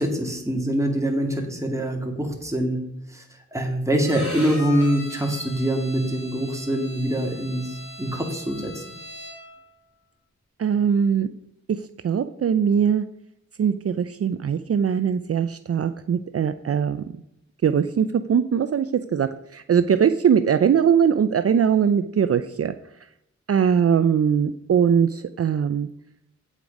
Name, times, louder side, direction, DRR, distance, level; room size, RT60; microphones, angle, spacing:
voice 1, 0.0-2.8 3.1-3.2 3.5-7.7 8.0-8.8, right 1 dB, 10° right, 1 dB, 2.2 m, -24 dB
Bowed string instrument, 4.0-9.6, left 1 dB, 45° left, 4.4 m, -39 dB
voice 2, 10.6-11.3 12.0-13.0 13.6-17.0 17.6-22.7 23.5-25.9, right 7 dB, 55° right, 11 dB, 0.5 m, -21 dB
8.4 x 8.2 x 5.2 m, 0.81 s
wide cardioid pair, 85°, 29 cm